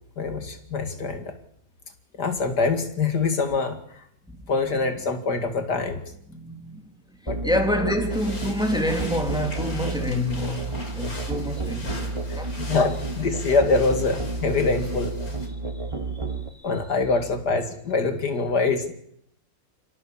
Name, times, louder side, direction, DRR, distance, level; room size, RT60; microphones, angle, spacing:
voice 1, 0.2-1.3 2.2-3.8 4.5-6.0 7.3-7.5 7.8-7.9 12.6-15.1 16.6-18.9, left 4 dB, 75° left, 2.8 m, -24 dB
voice 2, 6.3-6.8 7.4-12.5 16.6-16.7, left 1 dB, ahead, 3.0 m, -27 dB
Musical instrument, 7.3-16.5, right 3 dB, 20° right, 1.8 m, -31 dB
sound 1, 8.1-15.5, left 2 dB, 60° left, 4.4 m, -42 dB
28.5 x 18.5 x 7.3 m
omnidirectional pair, 1.8 m